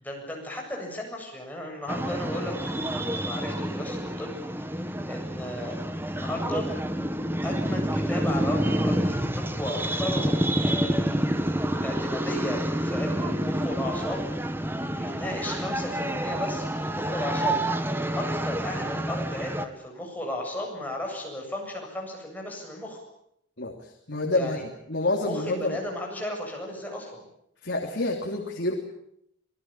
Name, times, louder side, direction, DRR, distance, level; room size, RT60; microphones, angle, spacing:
voice 1, 0.0-4.8 5.1-5.8 6.1-6.7 7.4-11.3 11.8-14.3 15.0-17.6 17.9-23.0 24.3-24.6 25.2-27.3, left 1 dB, 10° left, 0 dB, 7.7 m, -35 dB
sound 1, 1.9-19.7, right 1 dB, 10° right, 1.4 m, -28 dB
voice 2, 23.6-24.6 24.9-25.8 27.6-28.7, left 2 dB, 65° left, 1 dB, 3.1 m, -28 dB
27.5 x 19.0 x 8.9 m, 0.76 s
head